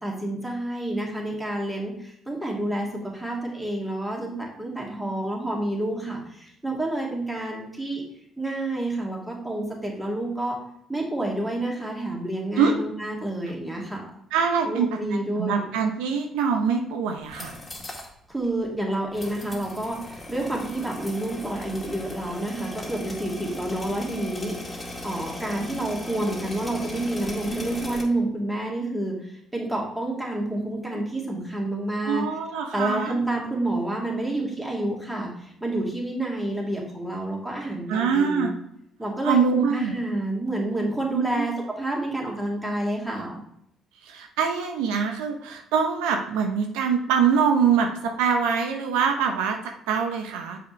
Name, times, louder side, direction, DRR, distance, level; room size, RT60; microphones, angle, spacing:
voice 1, 0.0-8.0 8.4-10.6 10.9-14.1 14.7-15.7 18.3-32.3 32.7-38.5 39.0-43.4, right 1 dB, 10° right, -2 dB, 2.4 m, -29 dB
voice 2, 14.3-14.9 15.4-17.5 32.0-33.2 37.9-38.5 39.2-39.9 41.1-41.4 44.0-49.6 49.9-50.6, right 6 dB, 85° right, 4 dB, 0.7 m, -24 dB
sound 1, 17.2-18.1 18.4-18.5 19.1-28.0, left 1 dB, 15° left, 1.9 m, -37 dB
6.9 x 5.1 x 3.2 m, 0.74 s
supercardioid pair, 60°, 0 cm